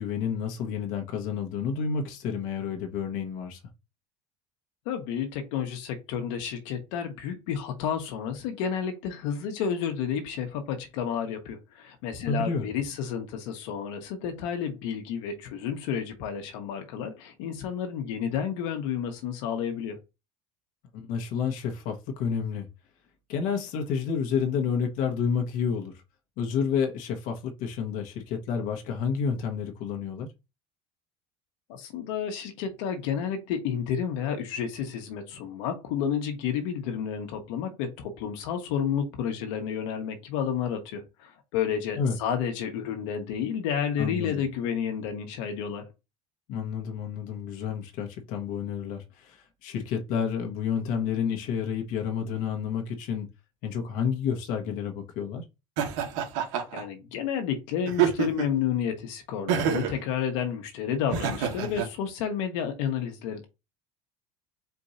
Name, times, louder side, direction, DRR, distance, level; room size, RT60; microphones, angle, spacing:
voice 1, 0.0-3.6 12.3-12.7 20.9-22.7 23.3-25.9 26.4-30.3 42.0-42.2 44.0-44.4 46.5-53.3 53.6-55.4, left 6 dB, 55° left, 1.1 m, -30 dB
voice 2, 4.8-20.0 31.7-45.8 56.7-63.5, left 8 dB, 80° left, 1.2 m, -31 dB
Laughter, 55.8-56.8 57.9-58.6 59.5-60.0 61.1-61.9, right 8 dB, 75° right, 1.4 m, -27 dB
4.5 x 2.5 x 4.2 m
cardioid pair, 150°, 16 cm